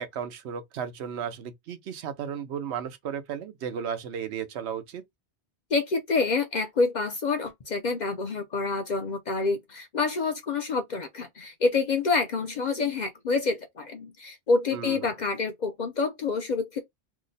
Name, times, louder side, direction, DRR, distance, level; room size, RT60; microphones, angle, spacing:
voice 1, 0.0-5.0 14.7-15.0, right 8 dB, 80° right, 0.9 m, -34 dB
voice 2, 5.7-16.8, left 4 dB, 55° left, 0.6 m, -27 dB
2.8 x 2.0 x 3.9 m
omnidirectional pair, 1.1 m